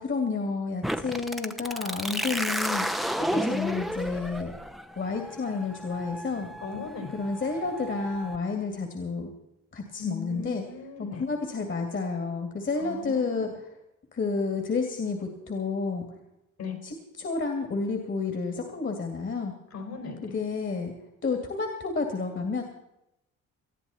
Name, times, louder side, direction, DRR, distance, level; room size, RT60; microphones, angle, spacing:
voice 1, 0.0-2.9 3.2-4.5 5.0-6.5 7.1-9.3 9.7-10.6 11.0-13.5 14.1-16.1 16.8-19.5 20.3-20.9 21.2-22.6, left 4 dB, 40° left, 4 dB, 2.4 m, -30 dB
sound 1, 0.8-8.4, equal, ahead, 0.8 m, -33 dB
voice 2, 6.6-7.1 10.0-11.2 12.8-13.5 16.6-16.8 19.7-20.4, left 5 dB, 65° left, 5 dB, 4.6 m, -38 dB
20.0 x 13.5 x 4.3 m, 0.86 s
cardioid pair, 90°, 30 cm